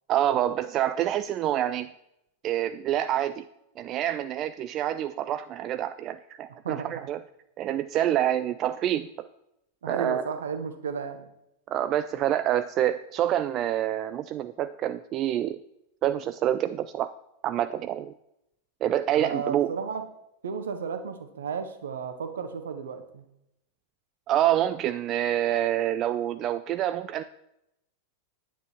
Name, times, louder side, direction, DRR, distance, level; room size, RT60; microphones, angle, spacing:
voice 1, 0.1-1.9 2.4-3.4 3.8-7.2 7.6-9.3 9.9-10.3 11.7-15.6 16.0-17.1 17.4-18.1 18.8-19.7 24.3-27.2, right 11 dB, 35° right, 12 dB, 0.3 m, -27 dB
voice 2, 6.6-7.0 9.8-11.2 19.1-20.0 20.4-23.2, right 6 dB, 65° right, 8 dB, 1.2 m, -33 dB
9.6 x 9.1 x 4.3 m, 0.84 s
figure-of-eight pair, 90°, 0 cm